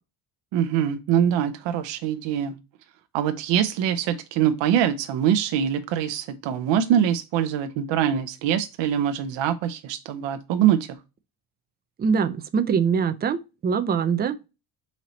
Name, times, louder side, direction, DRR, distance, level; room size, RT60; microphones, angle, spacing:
voice 1, 0.5-2.5 3.1-10.8, right 9 dB, 70° right, 0.6 m, -23 dB
voice 2, 12.0-14.5, right 6 dB, 20° right, 0.4 m, -23 dB
4.2 x 3.1 x 3.9 m
cardioid pair, 120°, 46 cm